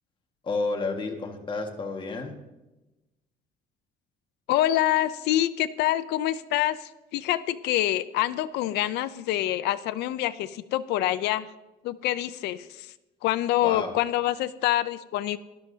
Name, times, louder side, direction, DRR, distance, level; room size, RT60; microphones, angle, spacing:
voice 1, 0.4-2.3 13.6-14.0, left 3 dB, 30° left, 2 dB, 1.7 m, -31 dB
voice 2, 4.5-11.5 11.8-12.9 13.2-15.4, left 14 dB, 80° left, 13 dB, 0.5 m, -26 dB
18.5 x 11.5 x 2.8 m, 1.0 s
cardioid pair, 110°, 17 cm